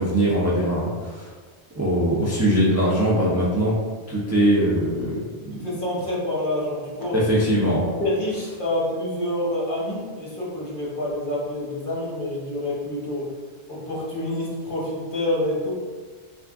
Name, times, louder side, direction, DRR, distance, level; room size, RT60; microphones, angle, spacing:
voice 1, 0.0-1.3 1.7-3.8 4.1-5.2 5.5-5.6 7.1-7.9, right 1 dB, 20° right, -7 dB, 0.4 m, -21 dB
voice 2, 5.5-7.2 8.0-13.3 13.7-15.7, left 1 dB, 50° left, -6 dB, 1.2 m, -27 dB
3.4 x 2.5 x 3.5 m, 1.5 s
omnidirectional pair, 1.2 m